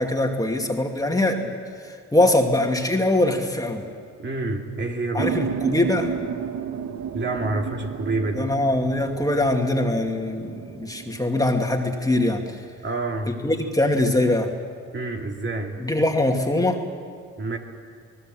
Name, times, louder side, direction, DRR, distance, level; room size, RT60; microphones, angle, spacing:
voice 1, 0.0-1.5 1.8-3.9 5.1-6.2 8.4-12.4 13.3-14.5 15.8-16.9, left 1 dB, 10° left, 2 dB, 2.4 m, -22 dB
voice 2, 4.2-5.3 7.1-8.5 12.8-13.4 14.9-15.8 17.4-17.6, right 2 dB, 40° right, 2 dB, 2.8 m, -28 dB
sound 1, 5.2-12.7, right 8 dB, 65° right, 1.4 m, -33 dB
27.5 x 19.5 x 7.7 m, 2.2 s
cardioid pair, 90°, 30 cm